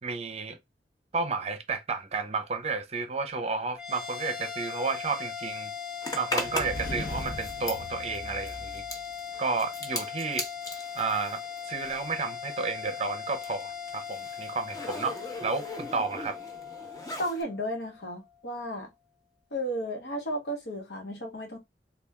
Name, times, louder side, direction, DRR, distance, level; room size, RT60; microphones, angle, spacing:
voice 1, 0.0-0.6 1.1-5.7 6.1-8.8 9.4-10.5 10.9-11.4 11.7-16.4, right 4 dB, 35° right, 0.6 m, -32 dB
sound 1, 3.7-18.3, left 7 dB, 5° right, 0.9 m, -39 dB
Zipper (clothing), 6.0-12.2 12.5-17.4, left 1 dB, 20° left, 0.8 m, -39 dB
sound 2, 6.4-9.3, left 1 dB, 50° left, 0.8 m, -39 dB
voice 2, 17.2-18.9 19.5-21.6, equal, 70° left, 1.2 m, -33 dB
3.4 x 2.3 x 3.4 m
head